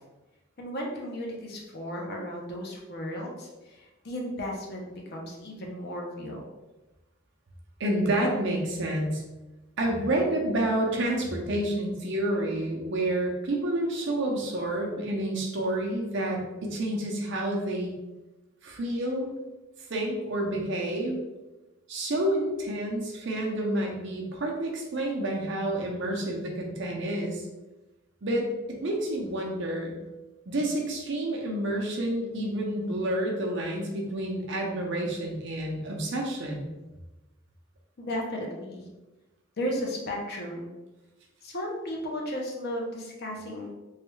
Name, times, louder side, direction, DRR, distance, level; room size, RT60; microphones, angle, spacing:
voice 1, 0.6-6.4 18.9-19.0 38.0-38.9 39.6-40.7 41.4-43.7, equal, 50° left, -1 dB, 0.6 m, -35 dB
voice 2, 7.8-9.2 9.8-17.9 18.6-19.3 19.9-21.2 21.9-27.4 28.2-29.9 30.5-36.7, right 1 dB, 60° right, 0 dB, 0.6 m, -29 dB
3.1 x 2.3 x 3.1 m, 1.1 s
head